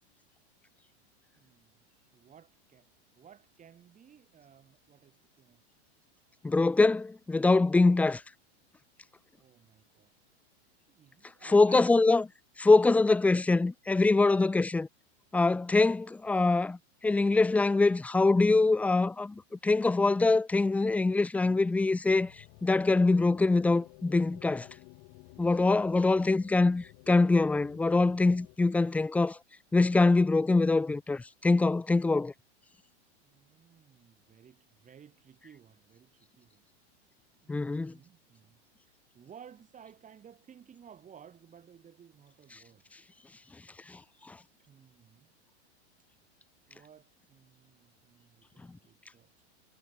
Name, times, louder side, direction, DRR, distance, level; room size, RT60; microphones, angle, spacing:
voice 1, 1.4-1.8 2.1-2.9 3.2-5.6 9.3-10.1 10.9-12.0 12.7-12.8 18.3-18.5 33.2-36.7 37.4-38.6 39.1-42.9 44.6-45.3 46.7-49.5, right 8 dB, 25° right, 6.7 m, -56 dB
voice 2, 6.4-8.2 11.4-12.2 12.6-14.9 15.3-16.8 17.0-19.3 19.6-22.3 22.6-24.7 25.4-29.4 29.7-32.3 37.5-37.9, left 3 dB, 5° left, 0.4 m, -24 dB
sound 1, 22.1-28.6, left 38 dB, 50° left, 5.3 m, -54 dB
supercardioid pair, 130°, 33 cm